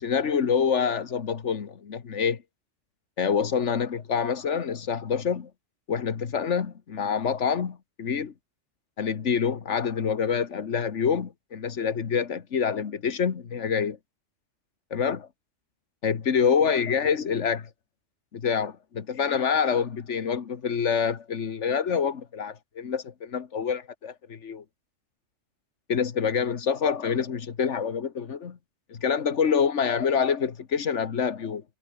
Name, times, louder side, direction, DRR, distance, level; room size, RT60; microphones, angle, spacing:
voice 1, 0.0-2.4 3.2-5.5 5.9-8.3 9.0-14.0 14.9-15.3 16.0-17.7 18.3-24.6 25.9-28.6 28.9-31.6, left 6 dB, 70° left, 1.7 m, -26 dB
omnidirectional pair, 1.3 m